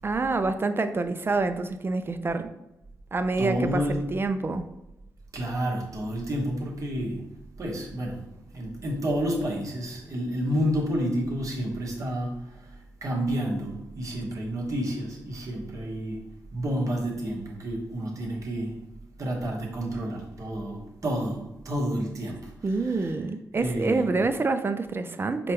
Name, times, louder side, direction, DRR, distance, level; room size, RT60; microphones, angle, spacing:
voice 1, 0.0-2.5 3.1-4.6 22.6-25.5, right 3 dB, 35° right, 10 dB, 0.4 m, -27 dB
voice 2, 3.4-4.1 5.3-7.3 7.6-16.2 16.5-18.8 19.2-23.1 23.5-24.0, equal, 55° right, -2 dB, 1.3 m, -30 dB
5.0 x 2.3 x 3.0 m, 0.89 s
supercardioid pair, 55°, 7 cm